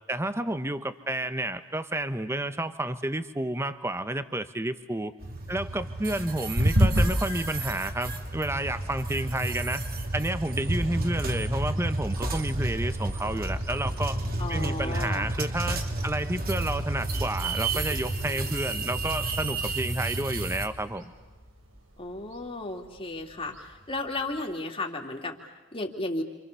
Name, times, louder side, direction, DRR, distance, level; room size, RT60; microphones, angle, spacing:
voice 1, 0.1-5.1 5.5-9.8 10.1-14.2 14.5-21.1, right 1 dB, 15° right, 10 dB, 1.2 m, -30 dB
sound 1, 5.2-20.7, right 2 dB, 50° right, 2.8 m, -31 dB
sound 2, 6.5-24.4, equal, 80° right, 4.7 m, -35 dB
voice 2, 14.4-15.3 22.0-26.2, left 2 dB, 30° left, 2 dB, 3.2 m, -34 dB
30.0 x 27.5 x 7.0 m, 1.2 s
head